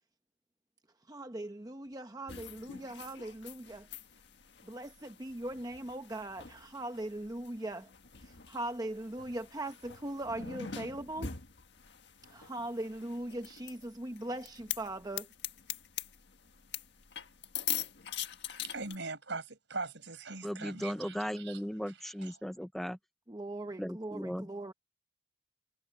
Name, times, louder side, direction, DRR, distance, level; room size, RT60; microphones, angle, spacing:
voice 1, 1.1-3.9 4.6-7.9 8.2-11.3 12.3-15.3 23.3-24.7, right 1 dB, 20° right, 0.8 m, -40 dB
sound 1, 2.3-19.0, left 9 dB, 60° left, 1.7 m, -44 dB
voice 2, 18.6-21.6 21.9-22.4, right 3 dB, 65° right, 5.2 m, -41 dB
voice 3, 20.4-23.0 23.8-24.5, equal, ahead, 0.4 m, -37 dB
head